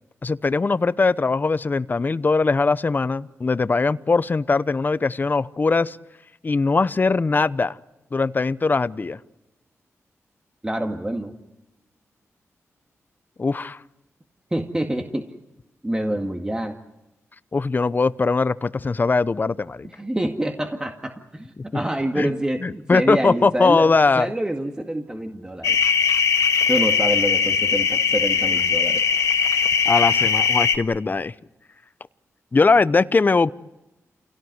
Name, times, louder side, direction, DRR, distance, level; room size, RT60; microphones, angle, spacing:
voice 1, 0.2-6.0 6.4-7.8 8.1-9.2 13.4-13.8 17.5-19.9 22.2-22.3 22.6-24.3 29.9-31.3 32.5-33.5, left 4 dB, 35° left, 16 dB, 0.8 m, -20 dB
voice 2, 10.6-11.4 14.5-15.3 15.8-16.8 19.9-23.9 24.2-25.8 26.7-29.0, right 1 dB, 15° right, 4 dB, 2.0 m, -26 dB
sound 1, 25.6-30.8, left 6 dB, 75° left, 1.8 m, -20 dB
28.5 x 17.5 x 9.5 m, 0.97 s
cardioid pair, 75°, 5 cm